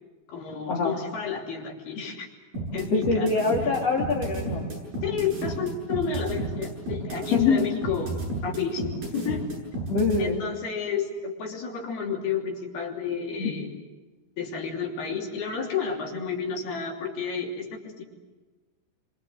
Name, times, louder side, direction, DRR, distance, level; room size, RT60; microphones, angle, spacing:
voice 1, 0.3-2.3 2.7-3.3 5.0-9.4 10.2-13.7 14.4-18.0, left 6 dB, 90° left, 1 dB, 5.1 m, -31 dB
sound 1, 2.5-10.2, right 2 dB, 65° right, 9.4 m, -32 dB
voice 2, 2.9-4.6 7.3-7.8 9.9-10.4 13.4-13.5, left 4 dB, 45° left, -1 dB, 3.5 m, -24 dB
28.5 x 25.0 x 7.8 m, 1.2 s
omnidirectional pair, 4.3 m